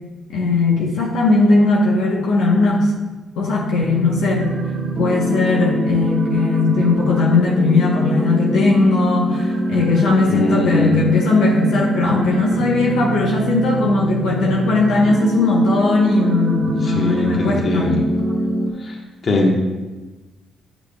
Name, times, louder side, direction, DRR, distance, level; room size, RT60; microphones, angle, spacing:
voice 1, 0.3-2.9 3.4-4.5 5.0-18.0, left 3 dB, 90° left, -2 dB, 1.0 m, -18 dB
sound 1, 3.8-18.7, right 2 dB, 60° right, 1.1 m, -23 dB
voice 2, 10.3-10.9 16.8-18.0 18.8-19.5, left 1 dB, 45° left, 0 dB, 1.3 m, -21 dB
8.6 x 6.1 x 2.3 m, 1.2 s
cardioid pair, 95°, 0 cm